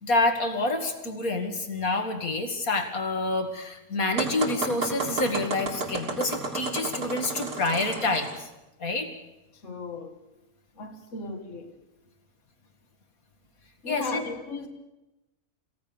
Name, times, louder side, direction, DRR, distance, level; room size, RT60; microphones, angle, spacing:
voice 1, 0.0-8.5 8.8-9.1 13.9-14.2, left 2 dB, 75° left, 2.5 m, -27 dB
sound 1, 4.2-8.4, right 3 dB, 85° right, 3.6 m, -32 dB
voice 2, 9.6-10.2 10.8-11.8 13.8-14.7, left 4 dB, 55° left, 2.1 m, -36 dB
26.0 x 16.0 x 7.0 m
omnidirectional pair, 1.5 m